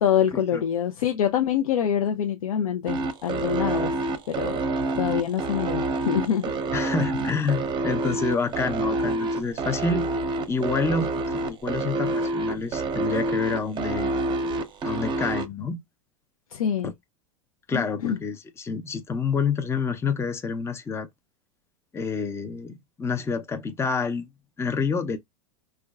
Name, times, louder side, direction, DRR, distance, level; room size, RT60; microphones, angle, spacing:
voice 1, 0.0-3.9 4.3-4.6 5.0-6.5 16.5-16.9 17.7-18.2, left 9 dB, 75° left, 0.5 m, -25 dB
sound 1, 2.9-15.5, right 2 dB, 25° right, 0.7 m, -27 dB
voice 2, 6.7-10.1 10.5-11.1 11.4-14.2 14.8-15.8 16.8-16.9 17.7-21.1 21.9-24.3 24.6-25.2, left 4 dB, 15° left, 0.5 m, -28 dB
4.4 x 2.2 x 2.3 m
hypercardioid pair, 90°, 18 cm